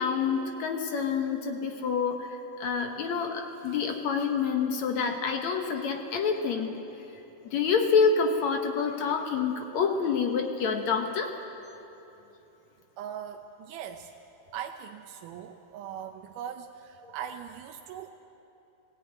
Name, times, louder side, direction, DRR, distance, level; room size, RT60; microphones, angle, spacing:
voice 1, 0.0-6.8 7.5-11.3, left 5 dB, 60° left, 4 dB, 2.1 m, -27 dB
voice 2, 13.0-14.1 14.5-18.1, right 9 dB, 75° right, 3 dB, 2.1 m, -40 dB
18.0 x 16.5 x 9.3 m, 2.9 s
omnidirectional pair, 4.1 m